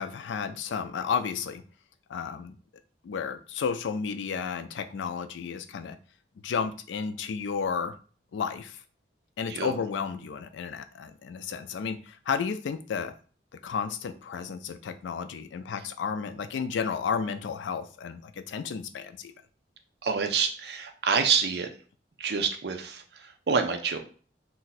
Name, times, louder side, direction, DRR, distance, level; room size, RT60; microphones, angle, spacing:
voice 1, 0.0-1.6 2.1-2.6 3.0-6.0 6.4-8.0 8.3-8.8 9.4-13.1 13.6-19.3, left 6 dB, 90° left, 10 dB, 0.3 m, -32 dB
voice 2, 20.0-21.7 22.2-24.0, right 5 dB, 60° right, 6 dB, 0.5 m, -27 dB
2.6 x 2.2 x 3.9 m, 0.40 s
head